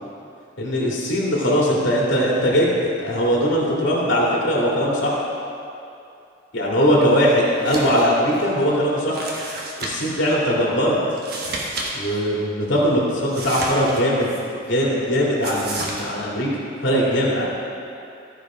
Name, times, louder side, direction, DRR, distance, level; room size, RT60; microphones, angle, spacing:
voice 1, 0.6-5.2 6.5-9.3 9.8-11.0 11.9-14.3 14.7-16.5 16.8-17.5, equal, 65° left, -4 dB, 2.3 m, -20 dB
sound 1, 7.6-8.0 8.3-8.4 9.1-10.2 11.1-11.9 12.2-12.3 13.3-14.4 15.4-16.0, right 2 dB, 50° right, 1.3 m, -31 dB
14.5 x 5.0 x 4.9 m, 2.6 s
head